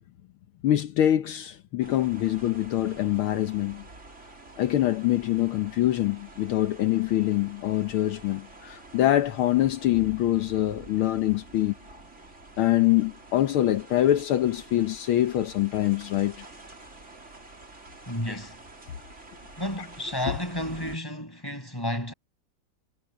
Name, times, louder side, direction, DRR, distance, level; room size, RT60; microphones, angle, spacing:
voice 1, 0.6-3.8 4.6-11.7 12.6-16.5 18.3-18.4, left 13 dB, 75° left, 1.8 m, -24 dB
sound 1, 1.8-21.0, right 2 dB, 30° right, 4.1 m, -48 dB
voice 2, 18.1-18.6 19.6-22.1, left 1 dB, 10° left, 7.5 m, -32 dB
omnidirectional pair, 2.4 m